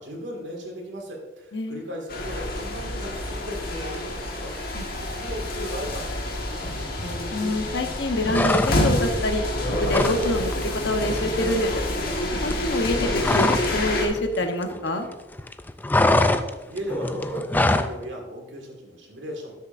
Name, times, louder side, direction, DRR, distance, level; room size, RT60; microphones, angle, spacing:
voice 1, 0.0-4.5 4.8-6.8 16.1-16.4 16.7-19.5, equal, 90° right, 0 dB, 2.1 m, -36 dB
sound 1, 2.1-14.1, left 1 dB, 55° left, 1.5 m, -28 dB
voice 2, 7.3-9.4 9.8-11.7 12.4-15.1, left 1 dB, 75° left, 5 dB, 1.0 m, -26 dB
sound 2, 8.3-9.1 9.4-10.2 10.5-10.7 11.0-13.8 14.0-15.1 15.4-18.0, left 2 dB, 10° left, 0.4 m, -23 dB
12.5 x 6.7 x 2.6 m, 1.1 s
head